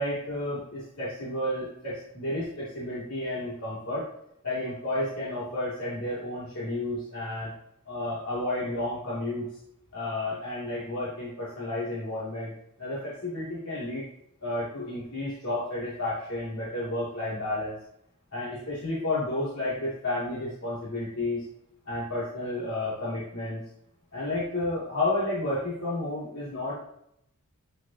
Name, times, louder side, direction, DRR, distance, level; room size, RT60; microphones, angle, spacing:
voice 1, 0.0-4.0 4.4-7.5 7.9-9.5 9.9-12.5 12.8-14.0 14.4-17.8 18.3-21.4 21.9-23.6 24.1-26.8, left 1 dB, 80° left, -9 dB, 2.5 m, -31 dB
9.8 x 5.8 x 2.8 m, 0.76 s
head